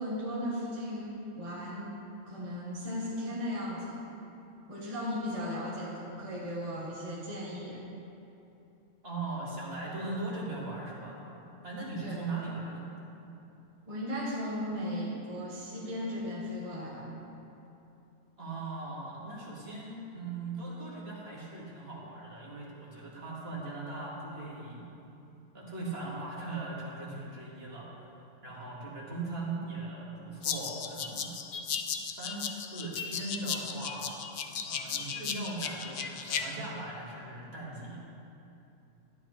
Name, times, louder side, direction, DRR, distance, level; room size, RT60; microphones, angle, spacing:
voice 1, 0.0-2.0 2.2-4.0 4.7-7.8 12.0-12.1 13.9-17.1, equal, 25° right, -5 dB, 1.3 m, -36 dB
voice 2, 9.0-11.2 11.6-12.9 18.4-24.8 25.5-28.1 28.4-31.3 32.1-34.3 34.7-38.0, right 2 dB, 45° right, -5 dB, 2.1 m, -39 dB
sound 1, 30.4-36.4, left 7 dB, 55° left, 0.6 m, -36 dB
13.0 x 10.5 x 3.2 m, 2.8 s
omnidirectional pair, 1.4 m